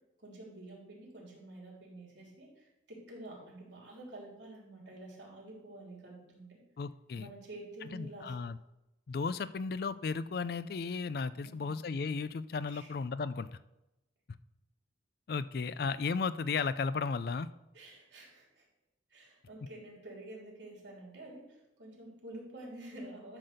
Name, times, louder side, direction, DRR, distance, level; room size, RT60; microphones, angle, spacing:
voice 1, 0.2-6.6 7.1-8.3 11.4-11.7 12.7-12.9 17.7-18.6 19.1-23.4, right 1 dB, 75° right, -2 dB, 3.2 m, -49 dB
voice 2, 6.8-7.3 7.9-8.6 9.1-13.5 15.3-17.5, left 4 dB, 55° left, 14 dB, 0.4 m, -34 dB
11.5 x 4.0 x 6.5 m, 0.94 s
head